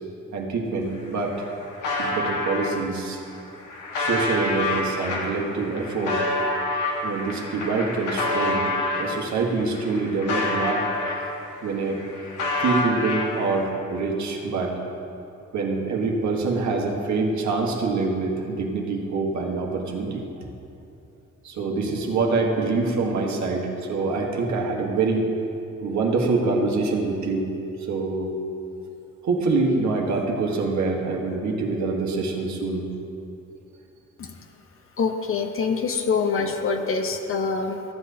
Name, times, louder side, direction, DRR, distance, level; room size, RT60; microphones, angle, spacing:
voice 1, 0.3-1.7 2.0-3.2 3.9-6.2 7.0-10.8 11.6-12.0 12.6-14.8 15.5-20.2 21.4-25.3 25.8-27.5 27.9-28.3 29.2-32.8, right 3 dB, 65° right, 0 dB, 1.4 m, -25 dB
sound 1, 0.8-0.9 1.2-2.7 3.3-9.1 9.6-11.5 11.8-13.6, left 2 dB, 80° left, 1.4 m, -27 dB
voice 2, 35.0-37.8, left 5 dB, 45° left, 5 dB, 0.8 m, -25 dB
14.0 x 8.1 x 2.8 m, 2.7 s
cardioid pair, 90°, 30 cm